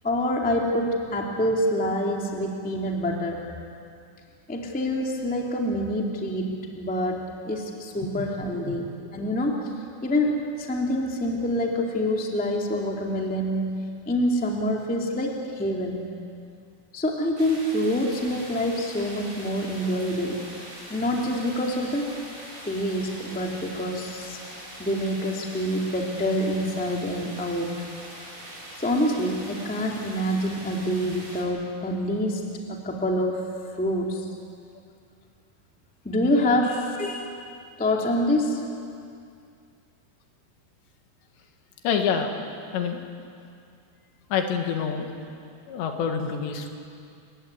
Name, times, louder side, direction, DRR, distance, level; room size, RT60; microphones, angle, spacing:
voice 1, 0.0-3.5 4.5-9.6 10.0-13.8 14.0-16.0 16.9-20.4 20.9-22.1 22.6-24.4 24.8-27.8 28.8-32.4 32.7-33.4 33.7-34.3 36.0-37.3 37.8-38.6, left 1 dB, 5° left, 0 dB, 1.3 m, -26 dB
sound 1, 17.4-31.4, right 1 dB, 10° right, 4.5 m, -42 dB
voice 2, 41.8-42.3 42.7-43.0 44.3-45.1 45.7-46.7, left 6 dB, 85° left, 4 dB, 4.0 m, -26 dB
29.0 x 15.5 x 9.6 m, 2.4 s
omnidirectional pair, 5.0 m